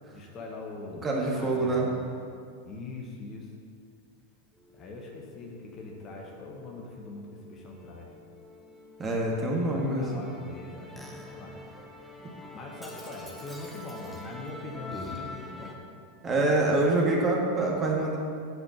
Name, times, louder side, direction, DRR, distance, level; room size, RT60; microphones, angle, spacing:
voice 1, 0.1-2.0 2.6-3.5 4.7-8.1 9.6-11.6 12.5-15.8, left 3 dB, 30° left, -1 dB, 1.2 m, -42 dB
voice 2, 1.0-1.9 9.0-10.1 16.2-18.2, right 2 dB, 20° right, -2 dB, 1.6 m, -25 dB
Musical instrument, 4.5-15.7, left 2 dB, ahead, 0.9 m, -46 dB
8.0 x 5.0 x 7.2 m, 2.3 s
figure-of-eight pair, 90°, 0 cm